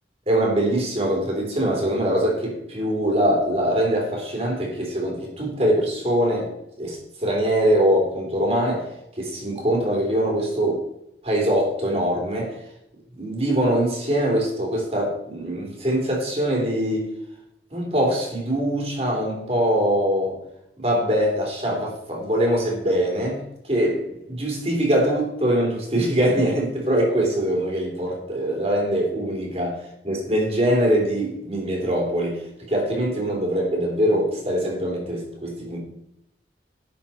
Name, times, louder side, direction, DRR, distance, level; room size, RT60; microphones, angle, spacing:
voice 1, 0.3-6.5 6.8-8.9 9.2-10.8 11.2-12.6 13.1-17.1 17.7-20.4 20.8-32.4 32.7-35.8, equal, 35° right, 3.3 m, -23 dB
11.0 x 6.8 x 4.3 m
head